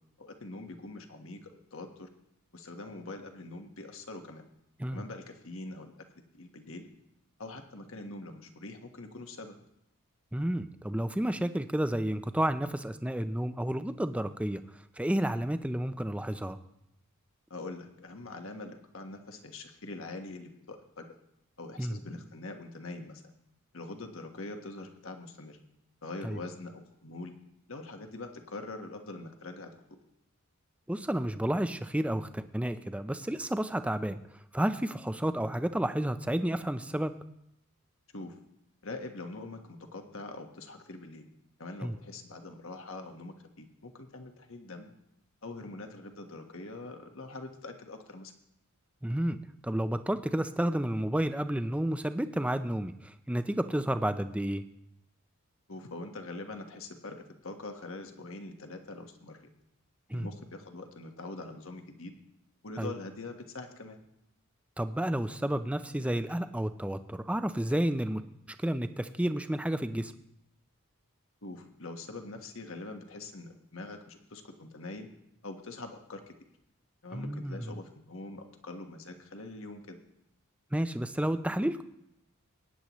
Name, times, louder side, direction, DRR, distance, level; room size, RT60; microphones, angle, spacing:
voice 1, 0.2-2.1 2.5-4.4 4.9-5.9 6.3-6.9 7.4-9.5 17.5-21.1 21.6-23.2 23.7-25.6 26.0-27.3 27.7-30.0 38.1-38.4 38.8-41.3 41.6-44.9 45.4-48.3 55.7-59.5 60.1-62.1 62.6-64.0 71.4-75.1 75.4-76.3 77.0-80.0, left 2 dB, 65° left, 5 dB, 1.4 m, -43 dB
voice 2, 10.3-14.6 15.0-16.6 21.8-22.0 26.2-26.4 30.9-34.2 34.5-37.1 41.8-41.9 49.0-49.4 49.6-54.6 60.1-60.3 62.8-62.9 64.8-68.2 68.6-70.1 77.1-77.7 80.7-81.8, right 1 dB, 5° right, 10 dB, 0.5 m, -31 dB
22.0 x 9.9 x 3.1 m, 0.81 s
head